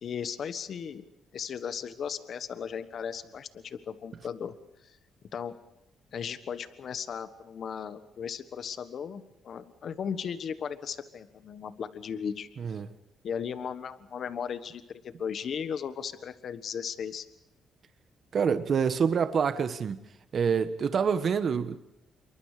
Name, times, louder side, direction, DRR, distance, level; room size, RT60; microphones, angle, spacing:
voice 1, 0.0-1.0 1.3-4.5 4.8-5.0 5.3-5.6 6.1-12.8 13.2-17.3, left 7 dB, 60° left, 1.4 m, -36 dB
voice 2, 12.6-12.9 18.3-20.0 20.3-21.8, right 6 dB, 50° right, 1.3 m, -26 dB
27.0 x 23.0 x 5.0 m
cardioid pair, 90°, 0 cm